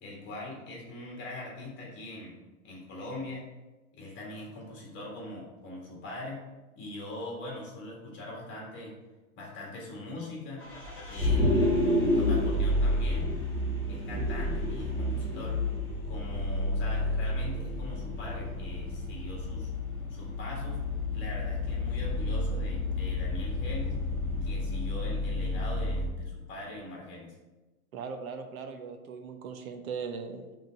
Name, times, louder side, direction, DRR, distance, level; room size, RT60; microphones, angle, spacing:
voice 1, 0.0-2.4 2.6-3.4 3.9-6.4 6.8-8.9 9.4-10.6 11.1-11.7 12.1-13.3 13.9-15.6 16.1-19.7 20.1-20.8 21.1-24.0 24.4-27.3, left 2 dB, 25° left, -2 dB, 1.8 m, -42 dB
Vehicle, 10.6-26.1, left 1 dB, 5° left, 1.7 m, -30 dB
voice 2, 27.9-30.6, right 5 dB, 70° right, 6 dB, 1.0 m, -39 dB
5.5 x 3.7 x 5.9 m, 1.1 s
supercardioid pair, 155°, 43 cm